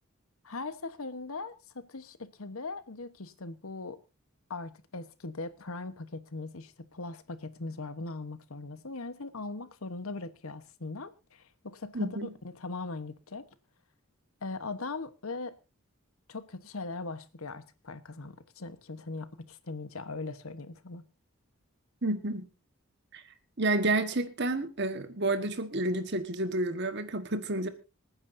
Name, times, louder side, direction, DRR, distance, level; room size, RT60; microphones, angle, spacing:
voice 1, 0.4-4.0 4.5-13.5 14.4-15.6 16.3-21.1, left 3 dB, 75° left, 1.1 m, -40 dB
voice 2, 11.9-12.3 22.0-22.4 23.1-23.2 23.6-27.7, right 2 dB, 50° right, 1.4 m, -30 dB
26.5 x 9.7 x 2.7 m
head